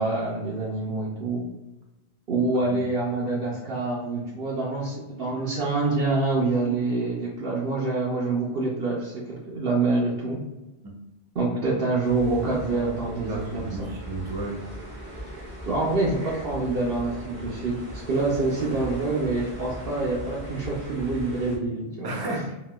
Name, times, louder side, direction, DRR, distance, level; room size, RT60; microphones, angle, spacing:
voice 1, 0.0-1.4 2.3-10.4 11.4-13.9 15.7-22.1, right 3 dB, 65° right, -4 dB, 0.8 m, -26 dB
sound 1, 12.0-21.6, equal, 85° right, 1.5 m, -39 dB
voice 2, 13.2-14.6 22.0-22.5, right 2 dB, 30° right, -1 dB, 0.6 m, -32 dB
3.9 x 2.2 x 2.2 m, 1.0 s
omnidirectional pair, 1.0 m